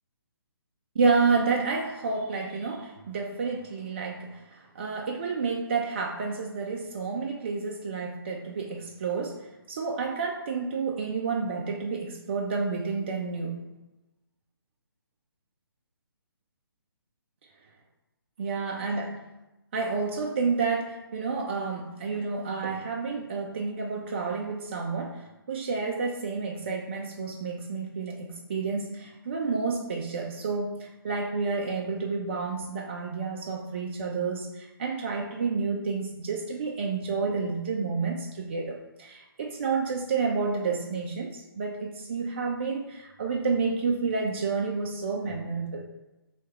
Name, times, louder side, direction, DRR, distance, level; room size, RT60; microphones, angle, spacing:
voice 1, 1.0-13.6 18.4-19.2 19.7-45.9, right 4 dB, 30° right, 0 dB, 0.4 m, -30 dB
3.1 x 3.1 x 4.4 m, 0.99 s
figure-of-eight pair, 140°, 13 cm